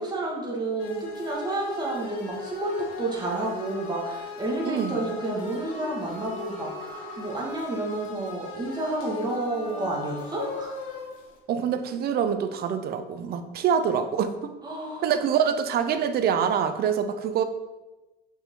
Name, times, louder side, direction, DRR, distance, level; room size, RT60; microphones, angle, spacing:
voice 1, 0.0-2.7 3.0-10.8 14.6-15.1, right 2 dB, 20° right, -3 dB, 1.9 m, -30 dB
sound 1, 0.8-11.4, left 3 dB, 75° left, 1.8 m, -38 dB
voice 2, 4.6-5.0 11.5-14.5 15.0-17.4, right 7 dB, 50° right, 9 dB, 0.7 m, -25 dB
6.7 x 5.4 x 3.8 m, 1.1 s
cardioid pair, 130°, 21 cm